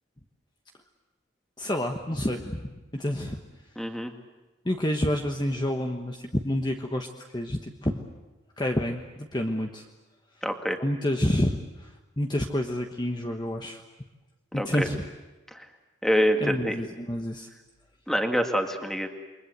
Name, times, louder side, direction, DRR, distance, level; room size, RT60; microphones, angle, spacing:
voice 1, 1.6-3.4 4.6-7.1 7.3-8.0 8.6-9.9 10.8-13.8 14.5-15.0 16.4-17.5, left 1 dB, 20° left, 3 dB, 1.2 m, -28 dB
voice 2, 3.8-4.1 10.4-10.8 14.5-14.9 15.5-15.7 16.0-16.8 18.1-19.1, equal, ahead, 4 dB, 1.9 m, -26 dB
28.5 x 23.0 x 8.2 m, 1.1 s
head